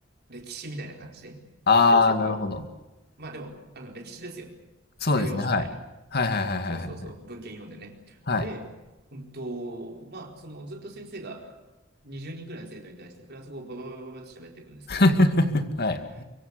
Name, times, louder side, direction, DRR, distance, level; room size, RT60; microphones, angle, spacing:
voice 1, 0.3-1.4 1.7-2.4 3.2-4.6 5.1-5.8 6.7-8.7 9.1-11.6 12.0-15.1 16.1-16.2, right 1 dB, 55° right, 2 dB, 4.4 m, -40 dB
voice 2, 1.7-2.7 5.0-5.7 6.1-6.9 8.3-8.5 14.9-16.2, left 3 dB, 50° left, 8 dB, 2.3 m, -22 dB
24.5 x 23.5 x 8.3 m, 1.1 s
head